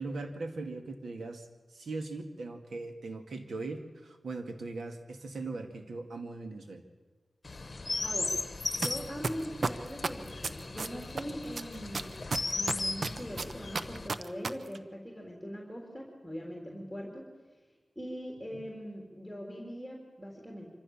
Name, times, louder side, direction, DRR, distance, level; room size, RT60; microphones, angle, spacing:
voice 1, 0.0-6.8 18.5-18.6, right 3 dB, 90° right, 6 dB, 2.1 m, -40 dB
Chirp tweet, 7.4-14.1, left 3 dB, 40° left, 1.1 m, -37 dB
voice 2, 8.0-8.4 8.7-12.2 12.5-17.3 18.0-20.7, equal, ahead, -1 dB, 3.7 m, -41 dB
sound 1, 8.8-8.9 9.2-11.2 11.6-14.5 14.7-14.8, right 3 dB, 60° right, 0.9 m, -31 dB
25.5 x 15.0 x 7.3 m, 1.4 s
wide cardioid pair, 80°, 0 cm